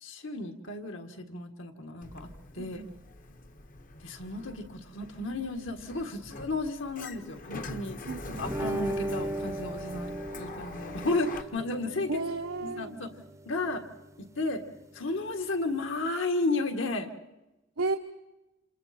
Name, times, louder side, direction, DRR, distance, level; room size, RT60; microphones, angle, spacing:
voice 1, 0.0-2.3 2.6-2.8 4.0-8.0 8.4-12.2 12.6-13.1 13.5-13.8 14.2-14.6 15.0-17.1, left 2 dB, 70° left, 5 dB, 1.8 m, -33 dB
Sliding door, 2.0-11.4, left 2 dB, 40° left, 1.0 m, -44 dB
voice 2, 2.6-3.0 8.1-8.5 12.1-12.9 17.8-18.0, right 3 dB, 90° right, 3 dB, 1.3 m, -33 dB
sound 1, 8.4-16.1, right 1 dB, 15° right, 0.7 m, -39 dB
28.5 x 27.5 x 4.4 m, 1.0 s
head